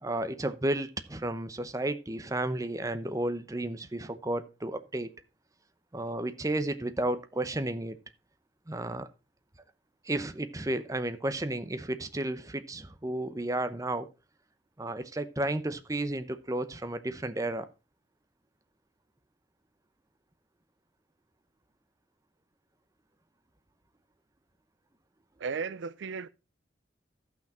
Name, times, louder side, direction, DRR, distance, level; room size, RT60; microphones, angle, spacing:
voice 1, 0.0-5.1 5.9-8.0 8.7-9.1 10.0-14.1 14.8-17.7, right 1 dB, 20° right, 0.7 m, -32 dB
voice 2, 25.4-26.3, right 5 dB, 75° right, 0.4 m, -35 dB
13.5 x 6.0 x 4.3 m
head